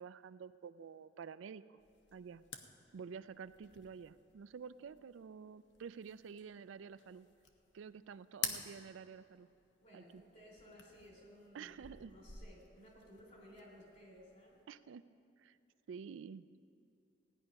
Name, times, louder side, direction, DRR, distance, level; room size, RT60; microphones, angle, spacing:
voice 1, 0.0-1.8 2.1-2.4 2.9-7.3 7.7-9.5 9.9-10.2 11.5-12.1 14.7-15.6 15.9-16.6, right 6 dB, 80° right, 14 dB, 0.4 m, -50 dB
sound 1, 1.8-14.7, left 6 dB, 65° left, 1.0 m, -51 dB
voice 2, 9.8-14.6, equal, 40° left, -2 dB, 3.3 m, -58 dB
16.0 x 10.0 x 5.3 m, 2.6 s
head